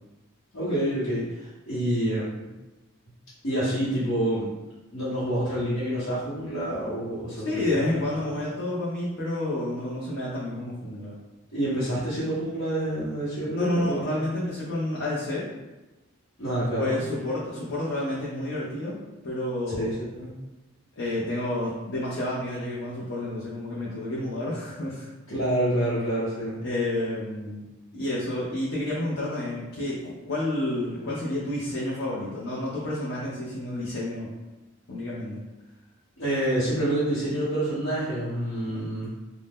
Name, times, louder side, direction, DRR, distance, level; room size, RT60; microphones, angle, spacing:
voice 1, 0.5-2.3 3.4-4.5 4.9-7.9 11.5-14.1 16.4-17.0 19.7-20.3 25.3-26.6 36.2-39.1, right 1 dB, 80° left, -12 dB, 1.0 m, -27 dB
voice 2, 7.4-11.1 13.4-15.5 16.8-19.9 21.0-25.1 26.6-27.7 27.9-34.3 34.9-35.4 38.7-38.9, left 1 dB, 65° left, -7 dB, 0.6 m, -30 dB
2.6 x 2.0 x 3.5 m, 1.1 s
head